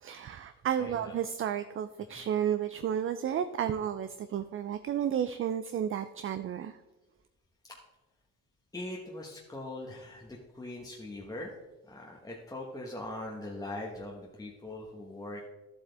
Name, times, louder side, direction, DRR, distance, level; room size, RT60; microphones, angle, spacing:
voice 1, 0.0-6.8, right 9 dB, 45° right, 11 dB, 0.5 m, -32 dB
voice 2, 0.8-1.2 2.1-2.3 7.6-7.8 8.7-11.5 11.9-15.4, left 1 dB, 10° left, -2 dB, 1.3 m, -41 dB
11.5 x 7.9 x 3.4 m, 1.1 s
cardioid pair, 90°, 30 cm